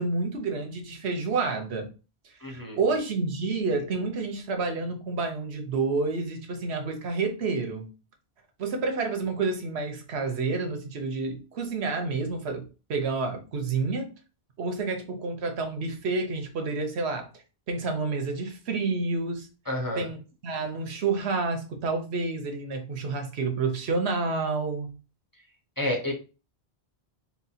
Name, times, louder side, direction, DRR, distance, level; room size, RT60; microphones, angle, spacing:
voice 1, 0.0-1.9 2.2-7.9 8.6-12.6 12.9-14.1 14.6-17.3 17.7-19.5 19.9-25.0, right 4 dB, 85° right, 1.1 m, -29 dB
voice 2, 2.4-2.8 19.7-20.1 25.8-26.1, left 1 dB, 20° left, 0.8 m, -29 dB
4.1 x 2.2 x 4.1 m
omnidirectional pair, 1.1 m